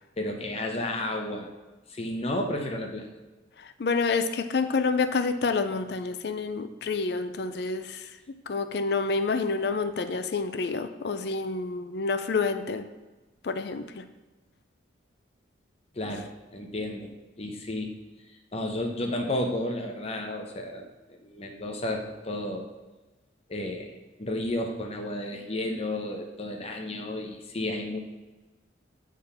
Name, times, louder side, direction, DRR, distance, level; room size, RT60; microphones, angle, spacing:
voice 1, 0.2-1.5 1.9-3.1 15.9-17.9 18.5-22.7 23.5-23.9 24.2-28.0, left 1 dB, 30° left, 2 dB, 0.8 m, -32 dB
voice 2, 3.6-8.1 8.5-12.8 13.4-14.0 16.1-16.2, left 4 dB, 55° left, 10 dB, 0.4 m, -28 dB
8.6 x 3.7 x 5.6 m, 1.2 s
head